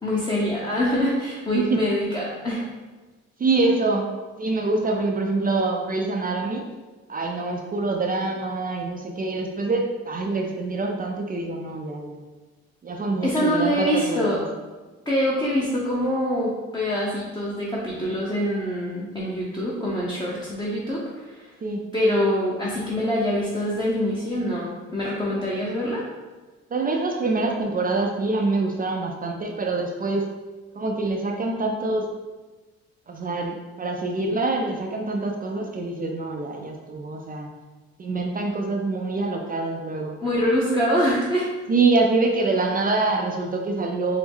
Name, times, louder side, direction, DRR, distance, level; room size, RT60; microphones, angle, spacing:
voice 1, 0.0-2.6 13.2-14.4 15.1-21.5 21.9-26.0 40.2-41.5, equal, 15° left, -6 dB, 0.8 m, -24 dB
voice 2, 3.4-4.1 4.4-6.7 7.1-12.2 12.8-14.4 21.6-21.8 26.7-30.2 30.7-32.1 33.1-37.5 38.0-40.2 41.7-44.2, right 3 dB, 30° right, 1 dB, 0.4 m, -25 dB
4.5 x 2.0 x 3.5 m, 1.2 s
cardioid pair, 90°, 30 cm